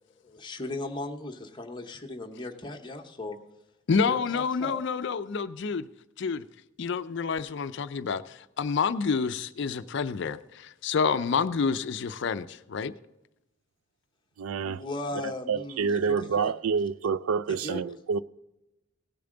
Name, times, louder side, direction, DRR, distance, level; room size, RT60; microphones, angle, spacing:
voice 1, 0.2-3.4 4.0-4.8 11.1-11.3 14.6-16.5 17.6-17.8, left 2 dB, 20° left, 1.0 m, -37 dB
voice 2, 3.9-5.9 6.2-6.4 6.8-12.9, left 5 dB, 55° left, 0.4 m, -28 dB
voice 3, 14.4-14.8 15.2-18.2, right 5 dB, 85° right, 0.4 m, -28 dB
17.5 x 6.9 x 3.8 m
head